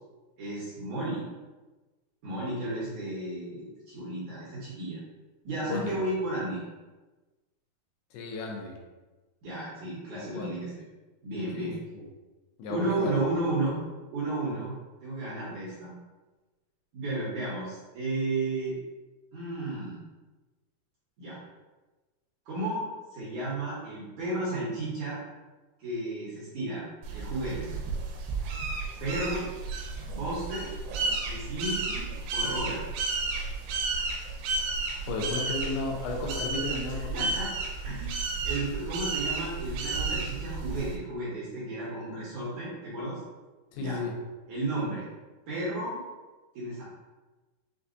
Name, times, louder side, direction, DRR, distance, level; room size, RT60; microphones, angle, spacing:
voice 1, 0.4-1.2 2.2-5.0 5.4-6.6 9.4-10.7 11.2-11.8 12.7-13.8 14.1-14.7 15.0-15.9 16.9-18.8 19.3-20.1 21.2-21.4 22.5-22.8 23.1-25.2 25.8-26.9 27.1-27.7 29.0-29.5 30.0-30.7 31.3-32.0 32.3-32.8 36.9-37.5 37.8-43.2 43.8-44.0 44.5-45.0 45.5-46.0 46.6-46.8, right 2 dB, 65° right, -9 dB, 2.0 m, -33 dB
voice 2, 8.1-8.8 10.2-10.5 11.5-12.1 12.6-13.2 35.1-37.3 43.7-44.2, left 3 dB, 85° left, 0 dB, 2.6 m, -34 dB
sound 1, 27.0-41.0, right 3 dB, 90° right, 2.7 m, -32 dB
6.6 x 2.3 x 2.5 m, 1.2 s
omnidirectional pair, 4.5 m